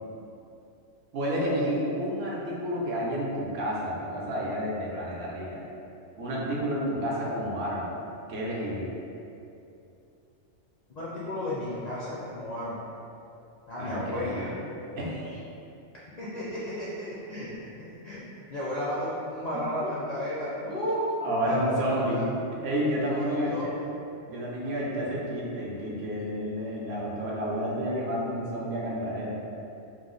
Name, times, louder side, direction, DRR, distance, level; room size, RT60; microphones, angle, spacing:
voice 1, 1.1-5.6 6.2-7.9 8.3-8.9 13.8-14.6 14.9-15.4 19.5-19.9 20.7-20.9 21.2-22.3 22.6-23.7 24.3-29.4, equal, 65° right, -5 dB, 0.8 m, -30 dB
voice 2, 10.9-13.0 13.7-14.5 16.2-17.7 18.0-22.2 23.0-23.7, left 1 dB, 60° left, -8 dB, 0.4 m, -33 dB
3.0 x 2.0 x 3.7 m, 2.7 s
omnidirectional pair, 1.2 m